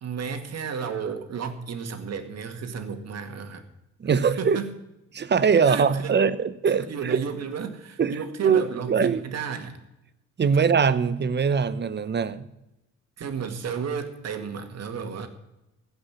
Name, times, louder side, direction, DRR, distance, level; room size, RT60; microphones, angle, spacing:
voice 1, 0.0-3.7 4.2-4.7 5.6-6.1 6.7-9.8 13.2-15.3, right 6 dB, 55° right, 7 dB, 2.0 m, -33 dB
voice 2, 4.0-4.6 5.1-7.2 8.0-8.6 8.9-9.2 10.4-12.5, right 6 dB, 35° right, 14 dB, 0.9 m, -22 dB
15.0 x 5.7 x 8.2 m, 0.91 s
cardioid pair, 90°, 30 cm